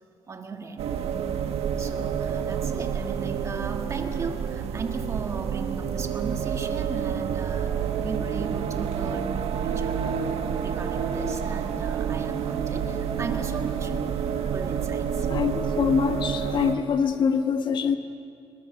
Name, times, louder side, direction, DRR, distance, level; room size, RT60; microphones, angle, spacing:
voice 1, 0.3-1.0 1.8-10.3 10.6-14.0 14.5-15.3, right 4 dB, 30° right, 4 dB, 1.7 m, -37 dB
sound 1, 0.8-16.7, right 7 dB, 85° right, 1.5 m, -28 dB
voice 2, 15.3-18.0, left 6 dB, 50° left, 7 dB, 1.3 m, -24 dB
24.0 x 22.5 x 6.8 m, 2.5 s
cardioid pair, 180°, 10 cm